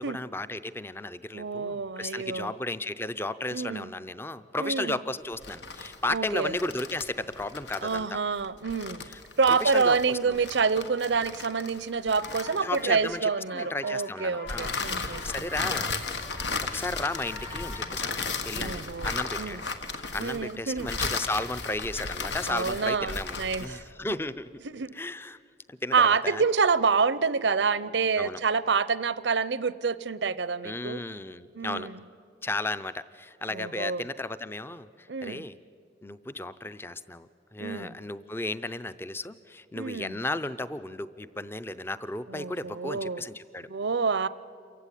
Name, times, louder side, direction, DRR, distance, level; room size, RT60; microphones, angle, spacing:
voice 1, 0.0-8.2 9.1-9.2 9.5-10.4 12.6-15.9 16.6-19.6 19.9-24.5 24.9-25.4 25.7-26.4 28.2-28.4 30.6-31.9 32.4-35.6 36.0-43.7, left 2 dB, 15° left, 14 dB, 0.5 m, -34 dB
voice 2, 1.3-2.5 3.5-3.9 4.6-5.0 6.1-6.5 7.8-9.0 9.4-15.3 15.6-15.8 18.6-19.1 19.4-19.6 20.2-20.9 22.5-23.8 24.7-24.9 25.9-31.0 31.5-32.0 33.5-34.0 35.1-35.4 37.6-37.9 39.7-40.2 42.3-43.2 43.7-44.3, right 5 dB, 85° right, 17 dB, 0.7 m, -27 dB
sound 1, 5.3-13.1 14.5-23.8, left 4 dB, 85° left, 1.6 m, -35 dB
sound 2, 12.0-17.9, left 3 dB, 55° left, 3.1 m, -46 dB
28.0 x 15.5 x 9.9 m, 2.4 s
head